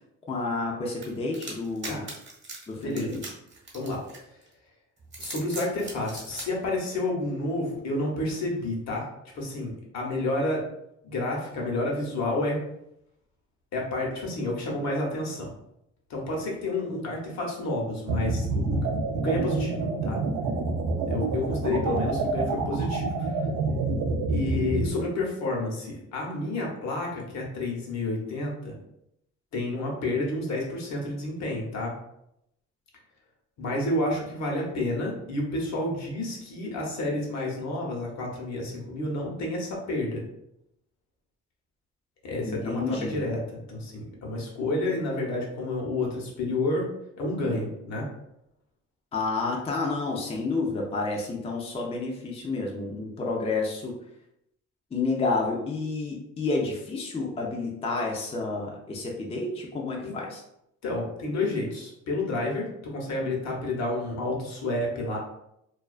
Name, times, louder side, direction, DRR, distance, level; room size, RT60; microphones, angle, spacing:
voice 1, 0.3-2.1 2.7-3.2 42.4-43.2 49.1-53.9 54.9-60.4, left 3 dB, 20° left, -1 dB, 0.4 m, -30 dB
sound 1, 1.0-4.5 5.0-6.5, right 3 dB, 40° right, 0.9 m, -40 dB
voice 2, 2.8-3.2 3.7-4.0 5.2-9.1 9.3-10.6 11.0-12.6 13.7-15.5 16.1-18.9 19.1-20.2 21.1-23.4 24.3-28.7 29.5-31.9 33.6-40.2 42.2-46.9 47.2-48.0 60.0-60.1 60.8-65.2, left 2 dB, 65° left, -1 dB, 0.8 m, -30 dB
sound 2, 18.1-24.9, right 3 dB, 70° right, 0.4 m, -27 dB
2.3 x 2.3 x 2.3 m, 0.80 s
cardioid pair, 90°, 30 cm